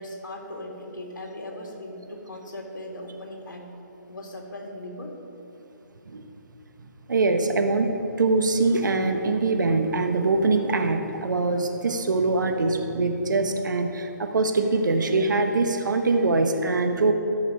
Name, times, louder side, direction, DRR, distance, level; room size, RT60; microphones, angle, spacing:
voice 1, 0.0-3.7 4.1-5.2, left 1 dB, 80° left, 0 dB, 2.3 m, -38 dB
voice 2, 7.1-17.1, right 3 dB, 75° right, 6 dB, 1.1 m, -23 dB
13.0 x 6.8 x 4.8 m, 2.9 s
hypercardioid pair, 155°, 10 cm